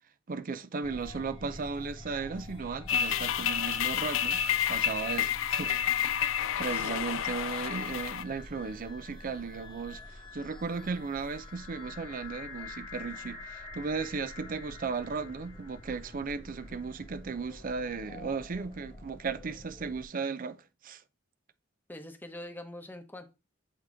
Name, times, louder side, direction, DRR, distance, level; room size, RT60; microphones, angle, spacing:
voice 1, 0.3-4.4 4.7-5.7 6.6-20.6 20.8-21.0, right 4 dB, 45° right, 0.5 m, -36 dB
sound 1, 0.8-20.0, left 2 dB, 25° left, 1.2 m, -47 dB
sound 2, 2.9-8.2, left 9 dB, 80° left, 0.4 m, -30 dB
voice 2, 6.7-7.0 21.9-23.3, left 1 dB, 10° left, 0.9 m, -44 dB
8.3 x 3.0 x 4.8 m
head